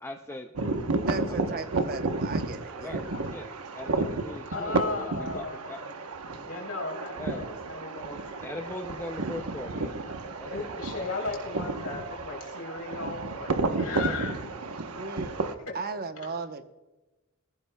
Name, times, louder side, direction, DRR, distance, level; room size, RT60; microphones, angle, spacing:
voice 1, 0.0-0.5 1.3-1.4 2.8-5.8 6.1-6.2 7.1-7.5 8.4-10.7, left 2 dB, 10° left, 5 dB, 0.4 m, -41 dB
sound 1, 0.5-15.5, right 3 dB, 80° right, 0.9 m, -32 dB
voice 2, 1.0-3.0 15.0-15.3 15.7-16.7, right 4 dB, 45° right, 9 dB, 0.9 m, -36 dB
voice 3, 4.5-5.9 6.5-8.3 10.5-14.4 15.7-15.8 16.2-16.3, left 3 dB, 90° left, 1 dB, 3.6 m, -36 dB
20.5 x 15.0 x 2.2 m, 1.1 s
head